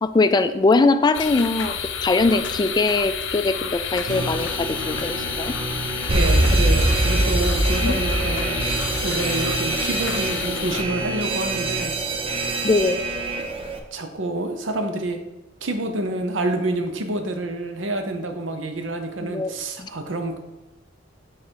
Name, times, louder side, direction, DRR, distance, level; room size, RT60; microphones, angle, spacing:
voice 1, 0.0-5.5 7.8-8.0 12.6-13.0 19.2-19.5 19.8-19.9, left 3 dB, 20° left, 10 dB, 0.3 m, -21 dB
sound 1, 1.1-10.8, left 7 dB, 70° left, 0.6 m, -30 dB
sound 2, 4.1-13.4, right 2 dB, 60° right, 1.0 m, -33 dB
Alarm, 6.1-13.8, right 2 dB, 30° right, 0.6 m, -23 dB
voice 2, 6.1-8.6 9.0-11.9 13.9-15.2 15.6-20.4, right 2 dB, 85° right, 6 dB, 0.8 m, -28 dB
6.3 x 3.8 x 4.6 m, 1.0 s
head